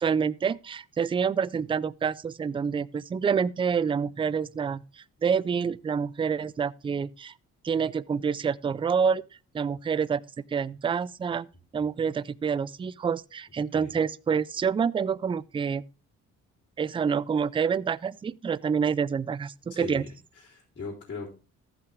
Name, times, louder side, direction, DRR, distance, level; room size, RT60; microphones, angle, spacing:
voice 1, 0.0-4.8 5.2-7.3 7.6-9.2 9.5-10.2 10.5-11.5 11.7-15.8 16.8-20.0, right 6 dB, 20° right, 0.3 m, -27 dB
voice 2, 19.7-20.1 20.3-21.4, left 4 dB, 40° left, 3.8 m, -39 dB
14.5 x 5.7 x 3.6 m
cardioid pair, 90°, 30 cm